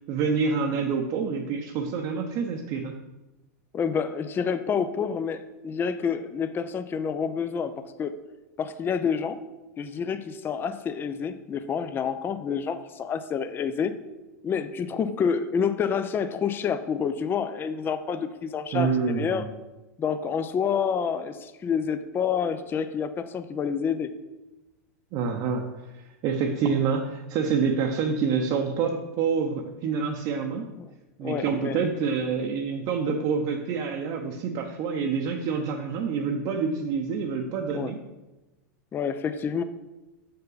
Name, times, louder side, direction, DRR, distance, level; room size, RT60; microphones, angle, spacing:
voice 1, 0.1-3.0 18.7-19.5 25.1-25.7 26.0-30.7 31.2-38.0, right 5 dB, 45° right, 2 dB, 0.7 m, -27 dB
voice 2, 3.7-7.7 8.0-8.1 8.6-9.4 9.8-13.9 14.4-19.5 20.0-24.1 30.8-30.9 31.2-31.8 37.7-37.9 38.9-39.6, left 6 dB, 25° left, 11 dB, 0.5 m, -28 dB
6.6 x 5.6 x 4.0 m, 1.0 s
hypercardioid pair, 110°, 9 cm